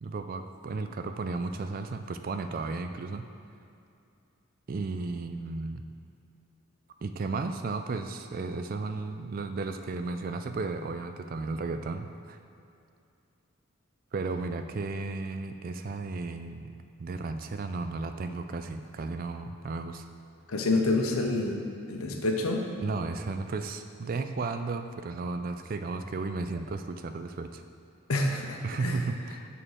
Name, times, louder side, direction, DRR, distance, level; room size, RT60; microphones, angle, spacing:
voice 1, 0.0-3.3 4.7-5.8 7.0-12.4 14.1-16.7 17.0-20.1 22.1-22.2 22.8-27.6 28.6-29.5, right 3 dB, 40° right, 8 dB, 0.3 m, -34 dB
voice 2, 20.5-21.6 21.9-22.6 28.1-29.0, left 2 dB, 85° left, 2 dB, 0.8 m, -27 dB
6.8 x 3.7 x 6.4 m, 2.6 s
head